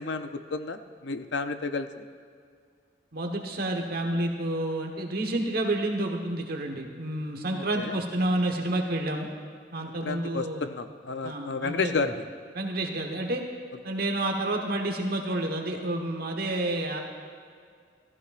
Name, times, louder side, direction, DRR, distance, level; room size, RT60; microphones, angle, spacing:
voice 1, 0.0-2.1 7.5-7.9 10.0-12.2, left 4 dB, 70° left, 9 dB, 0.6 m, -31 dB
voice 2, 3.1-9.3 9.7-10.7 11.2-12.1 12.5-13.4 13.8-17.0, right 1 dB, 55° right, 3 dB, 1.2 m, -29 dB
15.0 x 14.5 x 2.5 m, 2.1 s
head